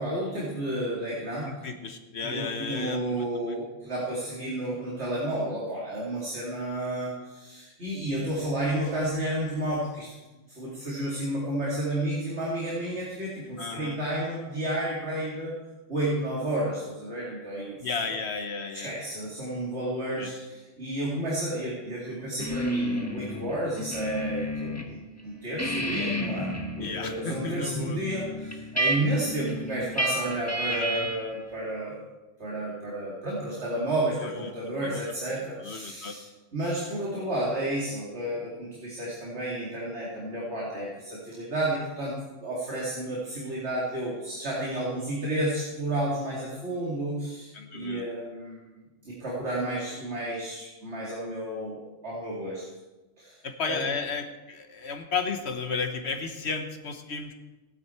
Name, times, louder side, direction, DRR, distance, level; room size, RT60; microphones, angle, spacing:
voice 1, 0.0-1.6 2.2-10.1 10.5-15.5 15.9-18.1 18.7-32.0 32.4-36.3 36.5-42.1 42.4-52.6 53.2-53.4 53.7-53.9, right 1 dB, 60° right, -5 dB, 2.7 m, -31 dB
voice 2, 1.4-3.3 13.6-14.0 17.8-18.9 20.2-20.3 26.8-28.0 30.6-31.1 34.8-35.1 35.6-36.2 47.5-48.0 53.4-57.3, left 4 dB, 60° left, 6 dB, 1.3 m, -33 dB
sound 1, 22.4-24.9 25.2-31.4, equal, 15° left, 1.2 m, -32 dB
16.0 x 10.0 x 4.4 m, 1.1 s
omnidirectional pair, 1.3 m